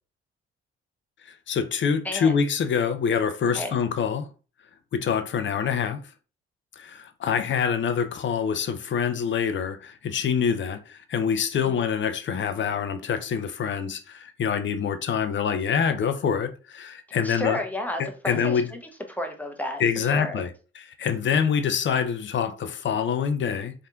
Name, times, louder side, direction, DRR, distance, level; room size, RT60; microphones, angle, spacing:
voice 1, 1.5-4.3 4.9-6.0 6.8-17.6 18.0-18.7 19.8-20.5 21.0-23.7, left 7 dB, 35° left, 0.7 m, -25 dB
voice 2, 2.0-2.4 3.5-3.8 11.6-11.8 17.2-18.8 19.1-20.4, left 1 dB, 5° left, 1.0 m, -32 dB
4.3 x 3.6 x 2.5 m
figure-of-eight pair, 45°, 32 cm